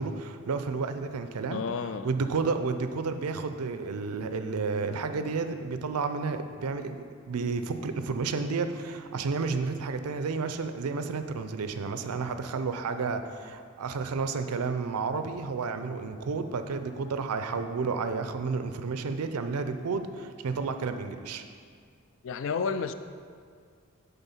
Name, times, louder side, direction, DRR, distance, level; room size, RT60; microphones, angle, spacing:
voice 1, 0.0-1.6 2.0-21.4, right 4 dB, 90° right, 9 dB, 0.5 m, -31 dB
voice 2, 1.5-2.1 22.2-22.9, left 5 dB, 60° left, 10 dB, 0.3 m, -31 dB
8.1 x 3.6 x 5.6 m, 2.1 s
head